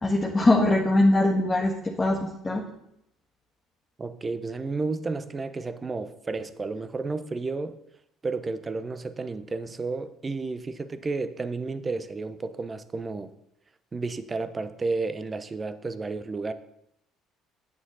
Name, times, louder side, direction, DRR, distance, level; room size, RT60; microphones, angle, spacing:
voice 1, 0.0-2.6, left 2 dB, 20° left, -1 dB, 1.4 m, -22 dB
voice 2, 4.0-7.8 8.2-13.3 13.9-16.5, right 3 dB, 25° right, 12 dB, 0.8 m, -32 dB
9.7 x 8.1 x 4.0 m, 0.80 s
figure-of-eight pair, 55°, 0 cm